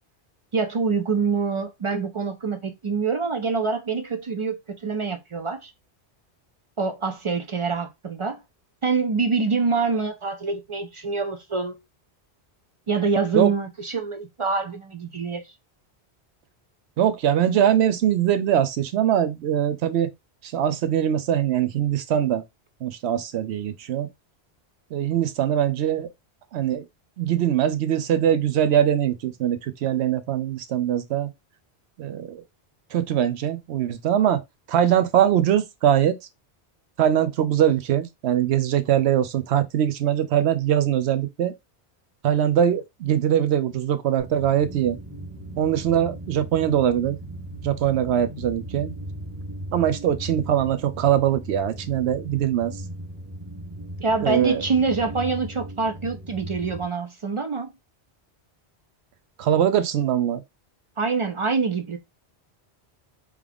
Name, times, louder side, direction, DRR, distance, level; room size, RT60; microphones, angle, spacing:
voice 1, 0.5-5.7 6.8-8.4 8.8-11.8 12.9-15.4 54.0-57.7 61.0-62.0, right 4 dB, 50° right, 0.3 m, -25 dB
voice 2, 17.0-20.1 20.4-22.4 22.8-24.1 24.9-26.1 26.5-26.9 27.2-31.3 32.0-32.4 32.9-34.4 34.7-36.2 37.0-41.5 42.2-45.0 45.6-47.2 47.6-48.9 49.7-52.8 54.2-54.6 59.4-60.4, right 10 dB, 80° right, 0.9 m, -22 dB
sound 1, 44.2-56.8, right 1 dB, 10° right, 1.2 m, -37 dB
3.6 x 3.2 x 3.3 m
omnidirectional pair, 1.1 m